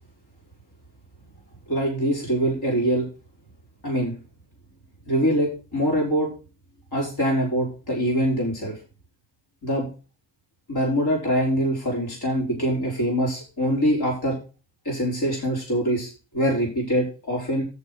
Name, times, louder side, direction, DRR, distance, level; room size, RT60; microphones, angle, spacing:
voice 1, 1.7-3.0 3.8-4.1 5.1-6.3 6.9-8.8 9.6-9.9 10.7-14.4 14.9-17.6, equal, 55° left, -3 dB, 5.2 m, -24 dB
7.4 x 7.2 x 6.2 m, 0.34 s
cardioid pair, 65°, 45 cm